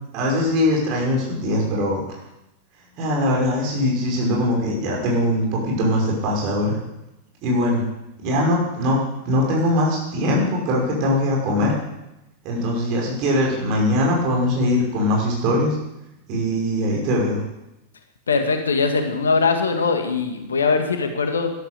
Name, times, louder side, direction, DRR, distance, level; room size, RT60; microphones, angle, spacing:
voice 1, 0.1-2.2 3.0-6.8 7.4-7.8 8.2-9.0 9.2-11.7 12.4-15.8 16.3-17.4, left 1 dB, 40° right, -2 dB, 5.8 m, -21 dB
voice 2, 18.3-21.5, left 4 dB, 70° left, 6 dB, 1.8 m, -21 dB
13.0 x 12.5 x 6.7 m, 0.93 s
figure-of-eight pair, 90°, 0 cm